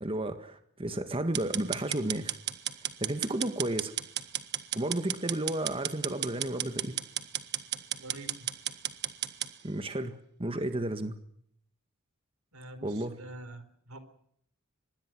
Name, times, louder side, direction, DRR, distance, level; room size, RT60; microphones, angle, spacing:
voice 1, 0.0-2.4 3.0-3.9 4.7-7.0 9.6-11.2 12.8-13.1, right 1 dB, 25° right, 8 dB, 1.7 m, -32 dB
sound 1, 1.3-9.5, right 11 dB, 50° right, 1.5 m, -34 dB
voice 2, 8.0-8.5 12.5-14.0, right 1 dB, 85° right, 11 dB, 4.3 m, -46 dB
25.0 x 21.5 x 6.2 m, 0.69 s
head